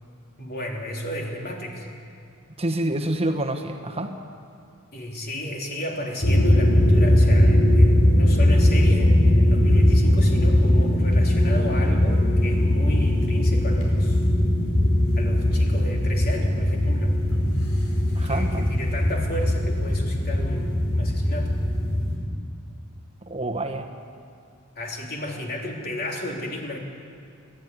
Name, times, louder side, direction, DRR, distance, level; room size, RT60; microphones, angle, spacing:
voice 1, 0.4-1.9 4.9-14.2 15.1-17.2 18.2-21.6 24.7-26.8, left 1 dB, 45° left, -1 dB, 3.5 m, -33 dB
voice 2, 2.6-4.1 18.1-18.6 23.2-23.9, right 1 dB, 30° right, 5 dB, 1.3 m, -27 dB
sound 1, 6.2-22.2, left 1 dB, 80° left, 4.9 m, -19 dB
29.0 x 11.5 x 9.8 m, 2.5 s
head